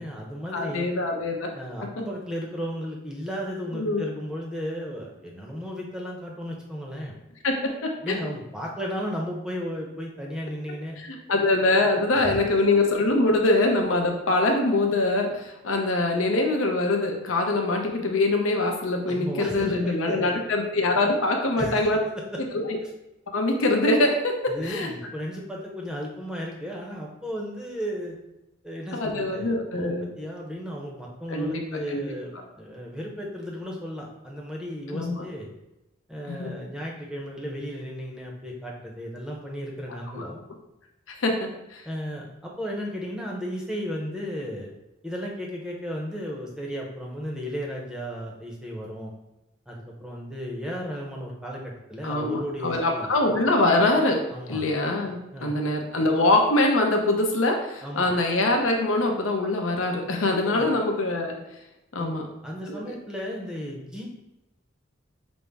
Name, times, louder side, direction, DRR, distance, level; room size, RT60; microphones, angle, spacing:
voice 1, 0.0-0.9 1.5-7.1 8.0-11.0 12.1-12.4 19.1-20.3 21.5-21.9 22.2-22.4 24.5-28.2 28.6-35.5 36.1-40.4 41.8-44.7 45.0-49.1 49.7-53.1 54.3-54.7 55.3-55.5 57.8-58.1 60.4-60.7 62.0-64.0, equal, 5° right, -2 dB, 0.6 m, -34 dB
voice 2, 0.5-1.5 3.7-4.0 7.4-8.1 11.0-22.0 22.4-22.5 23.3-24.9 28.9-30.1 31.3-31.5 31.9-32.1 34.9-35.2 36.3-36.5 39.9-40.3 41.2-41.8 52.0-54.2 54.5-61.4 61.9-62.2 62.7-62.8, left 2 dB, 90° left, 3 dB, 0.7 m, -24 dB
5.2 x 2.0 x 3.4 m, 0.95 s
head